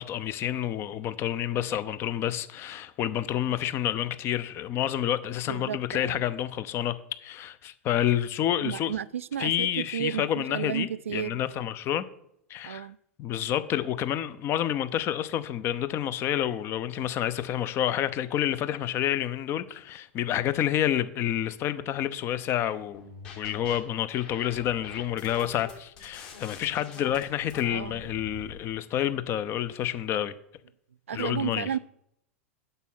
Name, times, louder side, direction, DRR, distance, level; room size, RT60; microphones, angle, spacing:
voice 1, 0.0-9.0 9.4-12.0 12.5-12.9 13.2-23.0 23.4-30.3 31.1-31.8, left 11 dB, 35° left, 0.7 m, -29 dB
voice 2, 5.5-6.2 8.6-11.4 12.6-13.0 27.7-28.0 31.1-31.8, right 9 dB, 70° right, 0.3 m, -33 dB
sound 1, 22.9-23.8 24.1-28.5, left 5 dB, 55° left, 3.2 m, -45 dB
8.2 x 6.7 x 5.6 m
figure-of-eight pair, 90°, 7 cm